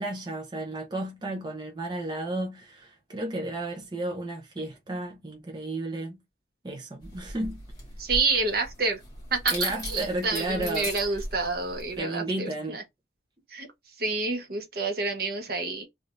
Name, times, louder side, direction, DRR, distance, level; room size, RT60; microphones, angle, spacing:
voice 1, 0.0-6.2 6.6-7.6 9.5-11.2 12.0-12.8, right 2 dB, 25° right, 0.7 m, -33 dB
sound 1, 7.0-12.0, left 2 dB, 20° left, 1.7 m, -38 dB
voice 2, 8.0-9.0 9.3-12.8 13.5-13.7 14.0-15.9, right 3 dB, 55° right, 1.0 m, -28 dB
3.4 x 3.3 x 2.5 m
head